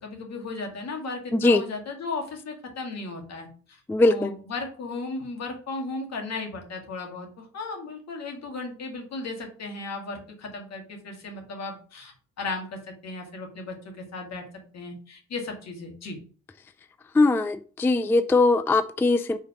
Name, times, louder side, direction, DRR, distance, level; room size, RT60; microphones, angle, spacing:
voice 1, 0.0-3.8 4.0-14.4 14.7-16.2, left 3 dB, 60° left, 3 dB, 2.1 m, -35 dB
voice 2, 3.9-4.3 17.1-19.4, left 2 dB, 10° left, 12 dB, 0.3 m, -21 dB
5.1 x 4.0 x 5.5 m, 0.41 s
cardioid pair, 90°, 30 cm